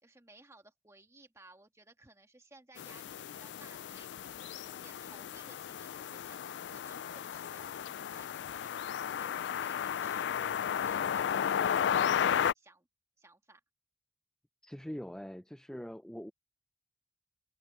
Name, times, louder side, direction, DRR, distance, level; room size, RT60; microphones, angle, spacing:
voice 1, 0.0-12.2 12.6-12.9 13.2-13.6, right 2 dB, 15° right, 1.7 m, -59 dB
sound 1, 2.8-12.5, left 8 dB, 75° left, 0.3 m, -34 dB
voice 2, 14.6-16.3, equal, 5° left, 0.4 m, -43 dB
open air
head